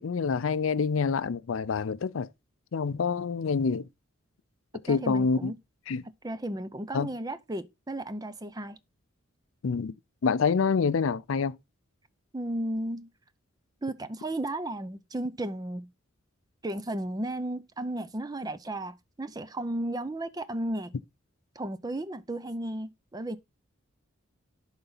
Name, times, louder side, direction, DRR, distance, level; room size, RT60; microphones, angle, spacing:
voice 1, 0.0-2.3 2.7-3.9 4.8-5.5 5.9-6.0 6.9-7.1 9.6-9.9 10.2-11.6, left 5 dB, 70° left, 0.4 m, -27 dB
voice 2, 4.9-5.6 6.2-8.8 12.3-13.1 13.8-15.9 16.6-20.9 21.6-23.4, right 1 dB, 20° right, 0.5 m, -34 dB
11.0 x 4.0 x 3.9 m
head